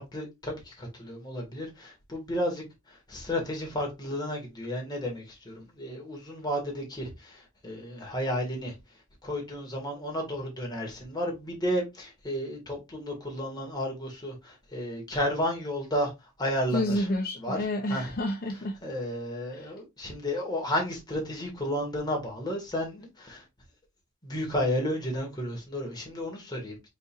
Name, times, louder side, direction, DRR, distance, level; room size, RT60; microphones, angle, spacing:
voice 1, 0.0-8.8 9.2-17.1 17.4-17.6 17.9-18.1 18.8-23.4 24.2-26.9, equal, 20° left, 1.9 m, -32 dB
voice 2, 16.7-18.8 19.5-19.7, left 1 dB, 45° left, 0.6 m, -29 dB
5.2 x 3.8 x 2.5 m
head